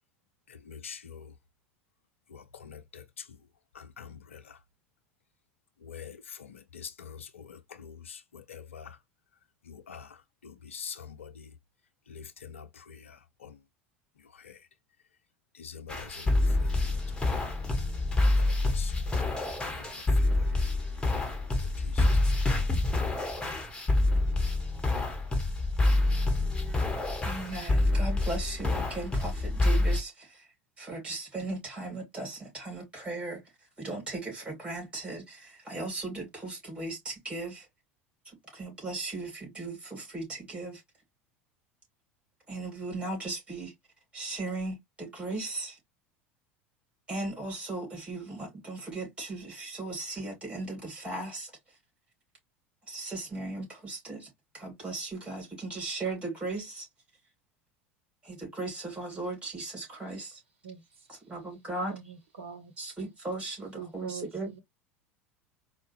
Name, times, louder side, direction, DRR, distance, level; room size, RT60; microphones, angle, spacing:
voice 1, 0.7-1.2 2.6-3.0 4.0-4.4 5.9-6.1 6.7-7.2 7.8-7.9 8.5-8.9 9.9-10.1 10.7-11.3 12.1-12.6 13.4-13.5 15.6-16.1 18.4-18.9 22.0-22.1, left 7 dB, 75° left, 0.5 m, -43 dB
sound 1, 15.9-30.0, left 2 dB, 10° left, 1.1 m, -27 dB
voice 2, 27.2-30.3 30.8-33.4 33.8-37.6 38.5-40.8 42.5-43.7 44.1-45.7 47.1-51.5 52.9-54.3 54.5-56.9 58.2-60.3 61.1-62.0 62.8-64.5, right 2 dB, 15° right, 2.9 m, -37 dB
voice 3, 63.8-64.3, right 7 dB, 70° right, 0.6 m, -40 dB
4.4 x 2.0 x 3.1 m
figure-of-eight pair, 75°, 7 cm